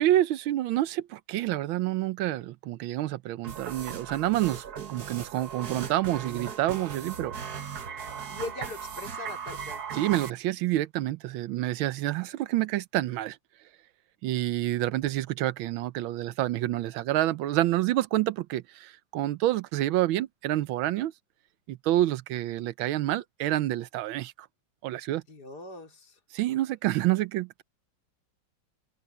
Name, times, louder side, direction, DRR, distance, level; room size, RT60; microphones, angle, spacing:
voice 1, 0.0-7.3 9.9-13.4 14.2-21.1 21.7-24.3 24.8-25.2 26.3-27.6, right 14 dB, 85° right, 1.5 m, -28 dB
sound 1, 3.4-10.3, right 7 dB, 55° right, 1.8 m, -38 dB
voice 2, 8.3-9.8 25.3-26.2, left 3 dB, 50° left, 4.2 m, -40 dB
omnidirectional pair, 2.2 m